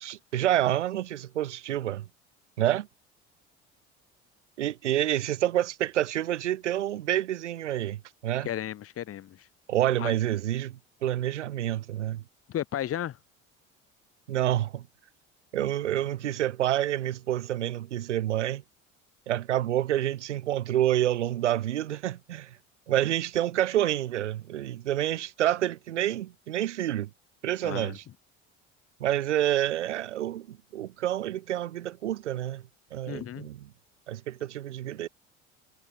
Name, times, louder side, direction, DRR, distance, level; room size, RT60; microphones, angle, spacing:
voice 1, 0.0-2.1 2.6-2.9 4.6-8.5 9.7-12.2 14.3-14.9 15.5-18.6 19.3-22.6 22.9-27.1 27.4-28.0 29.0-32.6 32.9-33.6 34.1-35.1, right 12 dB, 75° right, 0.9 m, -28 dB
voice 2, 8.4-9.5 10.0-10.1 12.5-13.2 27.6-28.0 33.1-33.5, left 11 dB, 40° left, 1.8 m, -34 dB
figure-of-eight pair, 60°, 35 cm